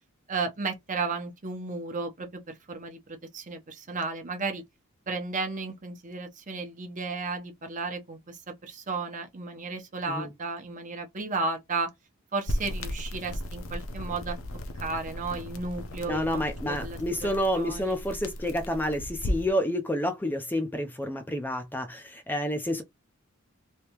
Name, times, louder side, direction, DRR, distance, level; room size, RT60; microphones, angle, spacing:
voice 1, 0.3-4.6 5.1-11.9 12.3-14.4 14.8-17.0 17.5-18.0, right 3 dB, 40° right, 0.9 m, -34 dB
sound 1, 12.5-19.5, left 1 dB, 70° left, 0.7 m, -35 dB
voice 2, 16.1-22.8, equal, 10° left, 0.5 m, -29 dB
3.3 x 2.8 x 3.0 m
head